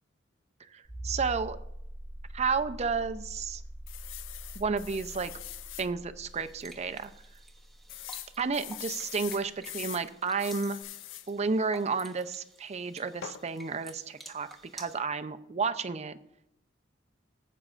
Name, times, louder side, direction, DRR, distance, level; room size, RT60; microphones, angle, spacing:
voice 1, 0.7-1.6 2.3-3.6 4.6-5.3 5.8-7.1 8.4-10.8 11.3-14.5 14.7-16.2, right 4 dB, 35° right, 10 dB, 0.5 m, -31 dB
sound 1, 0.9-9.3 10.8-10.9, right 1 dB, 30° left, 2.6 m, -44 dB
sound 2, 3.9-5.9 6.4-6.5 6.8-6.9 7.9-10.1 10.4-11.3 13.2-13.5, left 13 dB, 85° left, 0.4 m, -42 dB
sound 3, 6.3-15.0, right 2 dB, ahead, 1.1 m, -52 dB
20.0 x 8.4 x 2.5 m, 0.81 s
head